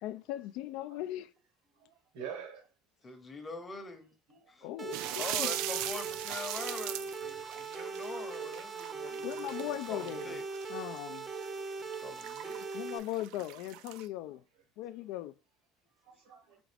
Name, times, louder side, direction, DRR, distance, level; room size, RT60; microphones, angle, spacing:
voice 1, 0.0-1.3 4.6-5.5 9.2-10.3 10.7-11.3 12.7-14.4 14.8-15.3, left 14 dB, 70° left, 0.3 m, -39 dB
voice 2, 2.1-2.7 4.3-4.7 9.0-9.3 11.0-11.1 11.3-11.4 11.8-11.9 14.0-14.4 16.0-16.6, right 7 dB, 90° right, 1.3 m, -47 dB
voice 3, 3.0-4.1 4.5-4.7 5.2-10.4 12.0-12.6, left 3 dB, 20° left, 0.8 m, -44 dB
sound 1, 4.8-13.0, right 4 dB, 20° right, 0.6 m, -40 dB
sound 2, 4.9-14.1, right 13 dB, 70° right, 0.3 m, -40 dB
5.0 x 2.4 x 3.3 m
cardioid pair, 140°, 0 cm